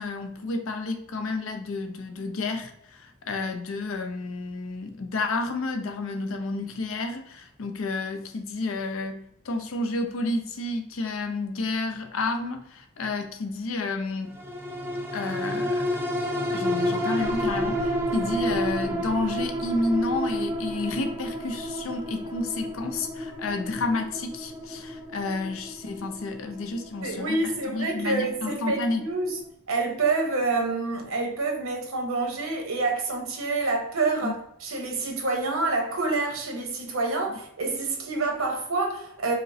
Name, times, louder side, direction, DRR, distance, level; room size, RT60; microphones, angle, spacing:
voice 1, 0.0-14.4 15.1-15.8 16.5-29.1 34.2-34.3, left 3 dB, 75° left, 0.5 m, -30 dB
sound 1, 14.3-29.0 29.4-29.5, equal, 10° right, 0.4 m, -31 dB
voice 2, 27.0-29.4 29.7-39.3, right 3 dB, 80° right, 0.9 m, -27 dB
5.0 x 2.1 x 2.7 m
head